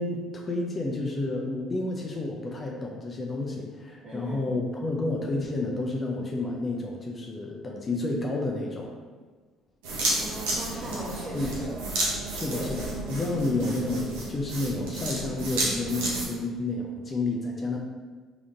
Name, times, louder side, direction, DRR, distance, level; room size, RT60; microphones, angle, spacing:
voice 1, 0.0-9.0 11.3-11.7 12.3-17.8, left 2 dB, 35° left, 0 dB, 0.5 m, -30 dB
voice 2, 4.0-4.5 10.2-11.7 12.4-12.7, right 1 dB, 50° right, -8 dB, 0.9 m, -38 dB
sound 1, 9.8-16.3, right 2 dB, 80° right, 0.7 m, -31 dB
3.4 x 2.8 x 2.5 m, 1.4 s
hypercardioid pair, 55°, 0 cm